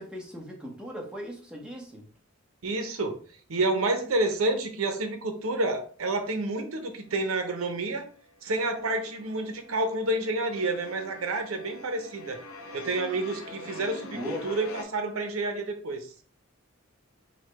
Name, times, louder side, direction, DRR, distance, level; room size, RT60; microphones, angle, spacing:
voice 1, 0.0-2.0 14.1-14.5, equal, 5° right, -1 dB, 0.9 m, -38 dB
voice 2, 2.6-3.2 3.5-8.1 8.4-12.4 12.7-16.1, right 2 dB, 75° right, 6 dB, 0.7 m, -29 dB
sound 1, 6.6-7.4 7.7-14.8, left 1 dB, 80° left, 0.8 m, -44 dB
4.7 x 2.1 x 4.6 m, 0.42 s
head